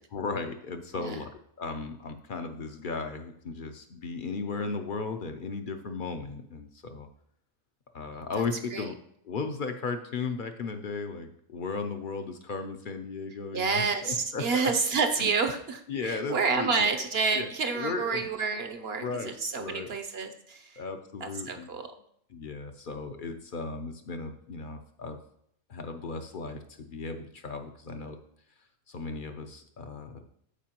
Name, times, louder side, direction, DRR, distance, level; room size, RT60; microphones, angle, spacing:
voice 1, 0.1-1.3 1.6-7.1 7.9-9.0 9.2-14.7 15.2-15.3 15.9-16.9 17.3-17.5 17.7-18.3 19.0-19.9 20.8-21.7 22.3-25.2 25.7-28.2 28.9-30.2, left 4 dB, 55° left, 6 dB, 0.6 m, -36 dB
voice 2, 13.5-20.8 21.2-21.9, right 4 dB, 55° right, 7 dB, 0.8 m, -29 dB
13.5 x 4.6 x 2.9 m, 0.69 s
omnidirectional pair, 1.5 m